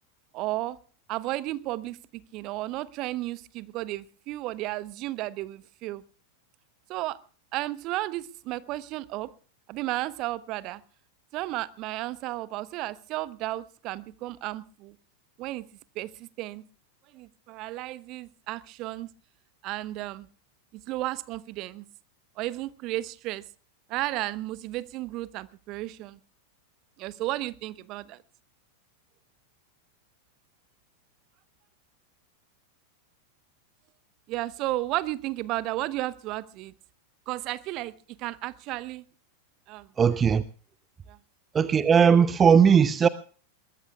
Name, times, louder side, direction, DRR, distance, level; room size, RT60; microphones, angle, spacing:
voice 1, 0.3-0.8 1.1-6.0 6.9-7.2 7.5-9.3 9.7-10.8 11.3-14.9 15.4-15.6 15.9-16.6 17.1-19.1 19.6-20.3 20.7-21.8 22.4-23.4 23.9-26.2 27.0-28.2 34.3-36.7 37.3-39.0 39.7-39.9 41.1-41.2, right 17 dB, 40° right, 1.0 m, -33 dB
voice 2, 40.0-40.4 41.5-43.1, right 7 dB, 20° right, 0.7 m, -18 dB
22.0 x 20.5 x 2.4 m
figure-of-eight pair, 90°, 0 cm